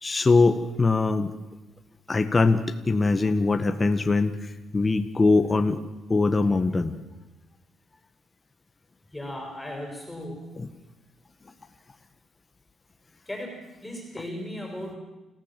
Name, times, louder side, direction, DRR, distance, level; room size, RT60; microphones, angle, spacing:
voice 1, 0.0-1.3 2.1-5.8 6.1-7.0 10.6-10.7, left 3 dB, 25° left, 7 dB, 1.6 m, -22 dB
voice 2, 9.1-10.5 13.3-15.0, left 1 dB, 10° left, 1 dB, 6.5 m, -36 dB
29.0 x 15.5 x 7.6 m, 1.1 s
cardioid pair, 90°, 0 cm